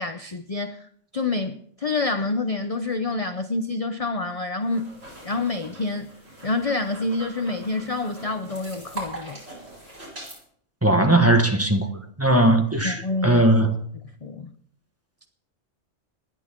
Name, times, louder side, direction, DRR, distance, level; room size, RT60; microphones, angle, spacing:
voice 1, 0.0-4.9 5.2-6.1 6.4-9.4 12.8-13.4 14.2-14.5, left 3 dB, 35° left, 0.7 m, -27 dB
sound 1, 4.6-10.4, right 1 dB, 80° right, 8.6 m, -41 dB
voice 2, 10.8-11.9 12.2-13.8, right 1 dB, 10° right, 1.5 m, -19 dB
27.0 x 11.0 x 3.7 m
omnidirectional pair, 1.3 m